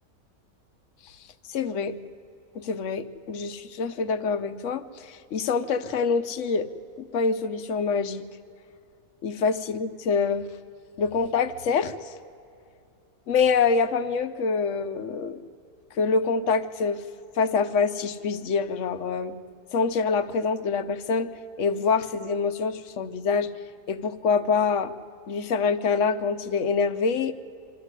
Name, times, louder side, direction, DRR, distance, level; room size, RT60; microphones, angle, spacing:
voice 1, 1.5-2.0 2.5-6.7 7.0-8.3 9.2-10.5 11.0-11.9 13.3-15.4 16.0-17.0 17.4-19.4 19.7-21.3 21.6-23.5 23.9-24.9 25.3-27.3, left 5 dB, 60° left, 12 dB, 1.2 m, -25 dB
25.0 x 13.5 x 9.8 m, 2.5 s
omnidirectional pair, 1.6 m